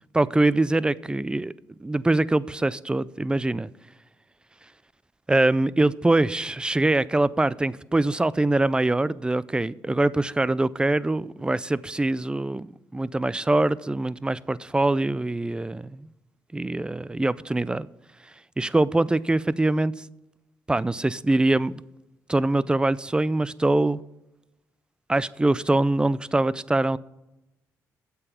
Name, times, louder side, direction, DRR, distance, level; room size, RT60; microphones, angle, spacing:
voice 1, 0.1-1.5 1.8-3.7 5.3-16.1 16.5-17.9 18.6-19.9 20.7-21.7 22.3-24.0 25.1-27.0, right 2 dB, 15° right, 0.4 m, -23 dB
8.5 x 7.0 x 7.0 m
cardioid pair, 75°, 7 cm